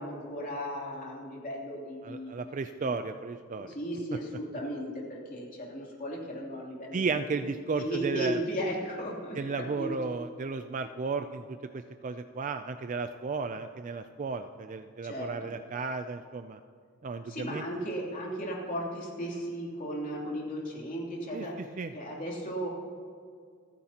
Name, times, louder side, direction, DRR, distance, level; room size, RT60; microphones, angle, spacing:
voice 1, 0.0-2.4 2.8-3.0 3.7-7.4 7.7-9.9 15.0-15.5 17.2-22.7, equal, 40° left, -4 dB, 3.0 m, -36 dB
voice 2, 2.0-3.7 6.9-8.4 9.4-16.6 17.0-17.6 21.3-21.5 21.8-21.9, right 4 dB, 35° right, 8 dB, 0.3 m, -34 dB
28.5 x 10.0 x 2.9 m, 2.2 s
head